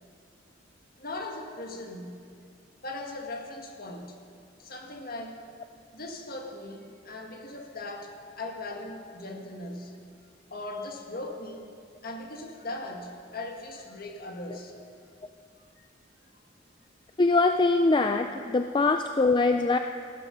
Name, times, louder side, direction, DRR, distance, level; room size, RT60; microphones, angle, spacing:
voice 1, 1.0-2.2 2.8-4.2 4.6-5.4 5.9-10.0 10.5-11.7 12.0-14.8 15.8-15.9, left 2 dB, 50° left, 2 dB, 1.7 m, -39 dB
voice 2, 17.2-19.8, left 3 dB, 25° left, 6 dB, 0.4 m, -23 dB
15.5 x 12.5 x 5.4 m, 2.3 s
head